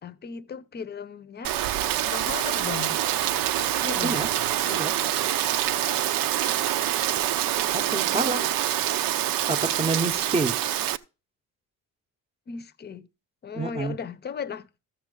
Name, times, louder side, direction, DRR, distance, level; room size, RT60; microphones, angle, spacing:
voice 1, 0.0-1.6 2.1-3.0 3.8-4.2 7.8-8.5 12.5-13.1 13.4-14.8, left 6 dB, 30° left, 0.7 m, -36 dB
Rain, 1.4-11.0, right 12 dB, 75° right, 0.7 m, -26 dB
voice 2, 7.7-8.4 9.5-10.5 13.5-14.0, right 3 dB, 15° right, 0.8 m, -28 dB
14.0 x 7.3 x 3.8 m
cardioid pair, 170°, 34 cm